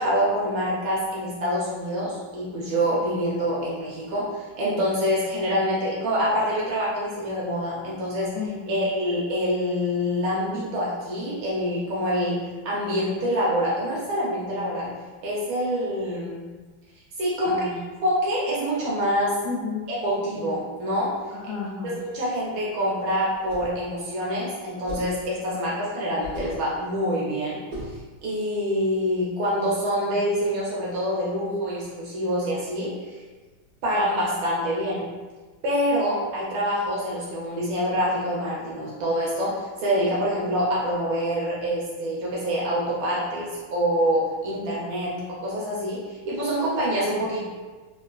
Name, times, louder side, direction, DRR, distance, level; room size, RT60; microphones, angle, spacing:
voice 1, 0.0-8.3 8.7-12.4 12.6-14.9 15.2-16.4 17.2-17.7 18.0-19.3 19.9-21.1 21.4-21.5 21.8-33.2 33.8-35.0 35.6-47.4, equal, 75° right, -6 dB, 1.5 m, -26 dB
voice 2, 8.3-8.9 17.4-17.8 19.4-19.8 21.3-21.9, left 4 dB, 85° left, -5 dB, 0.9 m, -32 dB
sound 1, 23.3-23.8 24.9-25.2 26.2-26.6 27.7-28.0, left 1 dB, 35° right, 0.9 m, -36 dB
3.5 x 2.9 x 2.3 m, 1.3 s
omnidirectional pair, 2.2 m